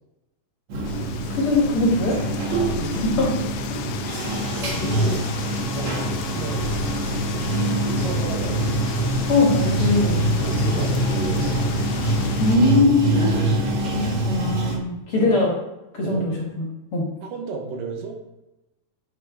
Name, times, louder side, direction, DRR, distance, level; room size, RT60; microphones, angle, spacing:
Bathtub (filling or washing), 0.7-14.8, right 1 dB, 50° right, 1.7 m, -24 dB
sound 1, 0.9-12.6, left 9 dB, 85° left, 2.4 m, -34 dB
voice 1, 1.3-2.2 3.2-3.3 9.3-10.2 12.4-15.5 15.9-17.1, left 2 dB, 50° left, -3 dB, 2.1 m, -21 dB
voice 2, 2.8-3.1 4.5-5.2 5.6-7.3 7.7-8.8 10.3-11.8 15.2-15.5 16.0-16.3 17.2-18.2, right 4 dB, 70° right, 1 dB, 2.9 m, -33 dB
9.6 x 6.1 x 3.7 m, 0.96 s
omnidirectional pair, 4.1 m